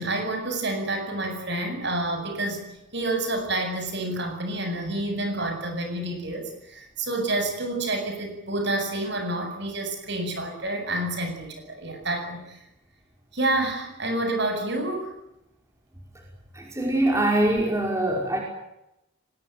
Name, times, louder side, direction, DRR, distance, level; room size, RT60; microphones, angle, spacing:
voice 1, 0.0-2.6 2.9-12.6 13.3-15.1, right 2 dB, 55° right, 5 dB, 7.9 m, -28 dB
voice 2, 16.5-18.4, right 1 dB, 15° right, 0 dB, 5.1 m, -23 dB
24.5 x 20.5 x 9.4 m, 0.87 s
head